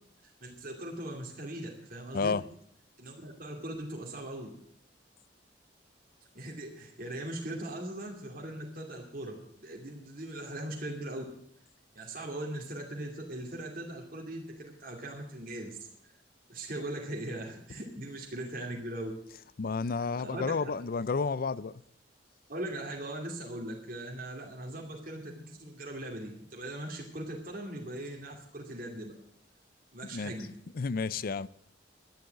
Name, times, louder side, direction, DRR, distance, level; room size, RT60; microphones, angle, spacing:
voice 1, 0.4-2.3 3.0-4.5 6.3-11.2 11.9-15.8 16.5-19.1 20.1-20.6 22.5-29.1 29.9-30.5, right 1 dB, 50° right, 2.5 m, -40 dB
voice 2, 2.1-2.5 19.6-21.7 30.1-30.3 30.7-31.5, left 4 dB, 55° left, 0.5 m, -31 dB
11.5 x 10.5 x 8.0 m
head